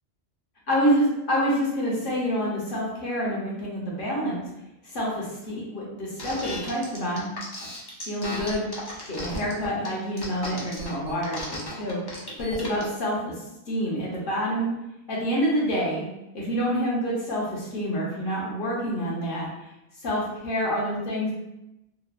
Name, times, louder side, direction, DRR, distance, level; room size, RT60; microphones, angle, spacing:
voice 1, 0.7-4.4 4.8-7.3 7.6-7.7 8.0-8.7 9.1-13.3 13.7-14.7 15.1-16.0 16.3-19.5 20.0-21.3, equal, 55° left, -5 dB, 1.0 m, -27 dB
sound 1, 6.2-12.9, left 1 dB, 40° left, 0.3 m, -35 dB
3.0 x 2.0 x 2.3 m, 0.91 s
omnidirectional pair, 1.1 m